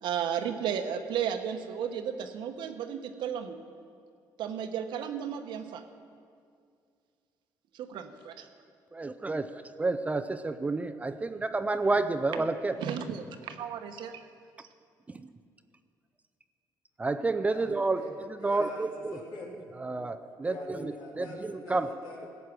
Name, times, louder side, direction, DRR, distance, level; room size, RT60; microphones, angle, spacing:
voice 1, 0.0-3.6 4.4-5.8 7.7-8.5 12.8-14.2, right 8 dB, 75° right, 7 dB, 1.0 m, -34 dB
voice 2, 8.9-12.8 15.1-15.3 17.0-18.0 18.4-19.2 19.8-21.9, right 3 dB, 15° right, 9 dB, 0.5 m, -30 dB
voice 3, 18.4-19.5 20.4-22.3, left 2 dB, 70° left, -2 dB, 3.1 m, -45 dB
15.5 x 8.3 x 6.0 m, 2.3 s
cardioid pair, 120°, 8 cm